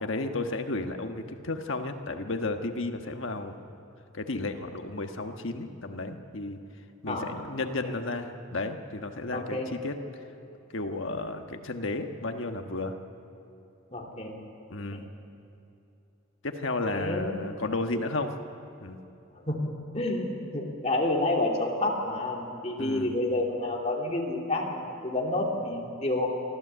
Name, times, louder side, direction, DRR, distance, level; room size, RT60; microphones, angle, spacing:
voice 1, 0.0-3.5 4.1-6.6 7.0-9.9 10.7-13.0 14.7-15.0 16.4-18.3 18.8-19.0 22.8-23.2, left 2 dB, 65° left, 5 dB, 1.4 m, -33 dB
voice 2, 9.3-9.7 13.9-14.3 14.9-15.0 16.9-17.4 19.5-26.3, left 2 dB, 30° left, -1 dB, 2.7 m, -29 dB
24.0 x 14.0 x 8.1 m, 2.8 s
head